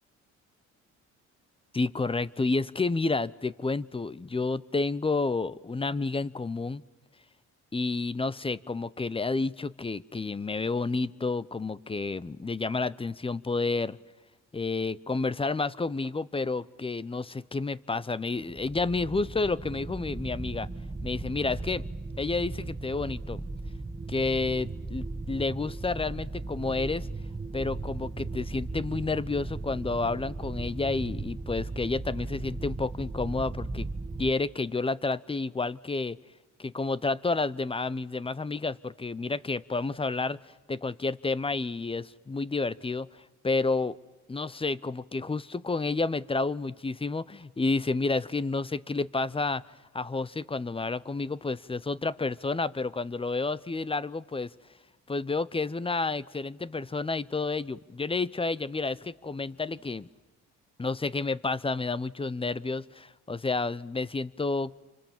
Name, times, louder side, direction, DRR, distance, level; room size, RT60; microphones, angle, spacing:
voice 1, 1.7-6.8 7.7-14.0 14.5-20.7 21.0-21.8 22.2-23.4 24.1-27.1 27.5-33.9 34.2-36.2 36.6-44.0 44.3-49.6 49.9-54.5 55.1-60.1 60.8-64.7, left 3 dB, 20° left, 18 dB, 0.8 m, -30 dB
sound 1, 18.4-34.3, right 3 dB, 20° right, 1.2 m, -37 dB
28.5 x 25.5 x 7.3 m, 1.1 s
cardioid pair, 90°, 30 cm